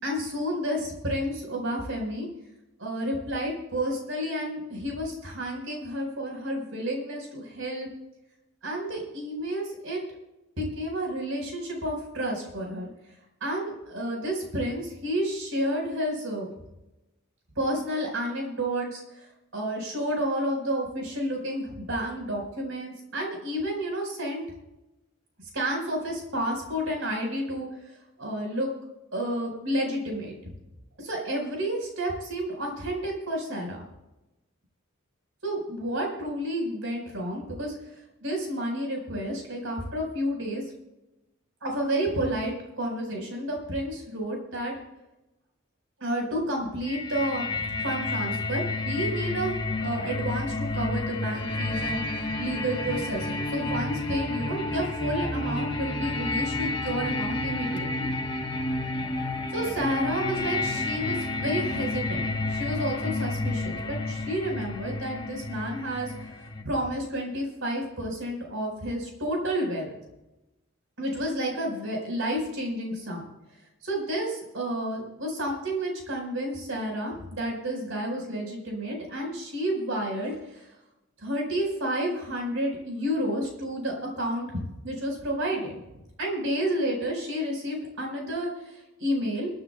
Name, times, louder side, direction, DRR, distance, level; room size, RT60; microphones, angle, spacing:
voice 1, 0.0-2.3 2.8-7.9 8.6-10.0 10.6-12.9 13.4-16.5 17.6-19.3 19.5-24.4 25.5-28.7 29.1-30.3 31.0-33.8 35.4-37.7 38.2-40.6 41.6-44.8 46.0-58.1 59.5-66.1 66.6-69.9 71.0-73.2 73.8-80.7 81.2-84.5 84.8-85.8 86.2-89.5, equal, 70° right, 0 dB, 4.5 m, -30 dB
sound 1, 46.9-66.6, left 2 dB, 20° left, 1.0 m, -30 dB
29.5 x 9.9 x 2.2 m, 0.97 s
head